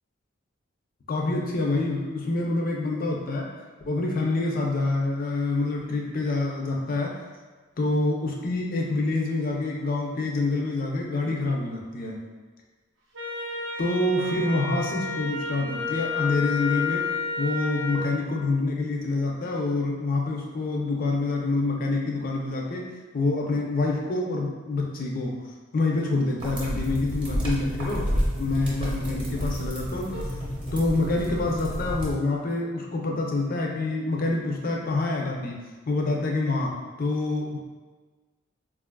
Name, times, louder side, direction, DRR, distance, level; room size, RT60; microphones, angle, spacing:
voice 1, 1.1-3.5 3.9-7.2 7.8-12.2 13.8-17.1 17.4-25.4 25.7-30.2 30.7-37.6, left 2 dB, 45° left, -1 dB, 0.5 m, -27 dB
Wind instrument woodwind instrument, 13.2-18.0, left 4 dB, 80° right, 0.6 m, -31 dB
sound 1, 26.4-32.1, equal, 25° right, 0.7 m, -30 dB
3.9 x 2.4 x 2.2 m, 1.4 s
head